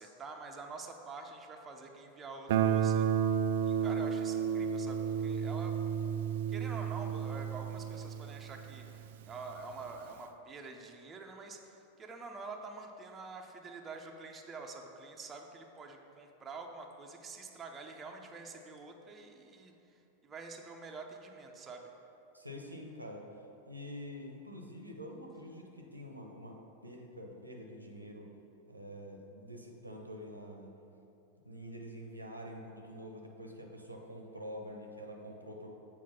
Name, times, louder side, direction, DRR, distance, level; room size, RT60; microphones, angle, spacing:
voice 1, 0.0-5.7 6.5-21.9, right 3 dB, 20° right, 2 dB, 0.7 m, -47 dB
Guitar, 2.5-9.2, right 8 dB, 55° right, 0.3 m, -32 dB
voice 2, 22.3-23.3 23.7-26.6 26.8-28.3 28.7-30.8 31.4-35.7, equal, 85° right, 1 dB, 0.8 m, -46 dB
7.5 x 4.5 x 5.7 m, 2.8 s
figure-of-eight pair, 90°, 0 cm